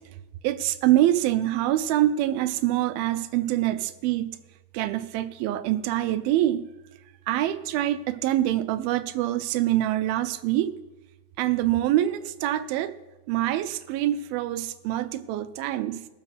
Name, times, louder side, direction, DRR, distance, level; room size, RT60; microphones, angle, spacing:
voice 1, 0.4-4.4 4.7-6.7 7.3-10.8 11.4-12.9 13.3-16.1, right 13 dB, 85° right, 11 dB, 2.4 m, -25 dB
20.5 x 7.2 x 4.2 m, 1.1 s
omnidirectional pair, 4.2 m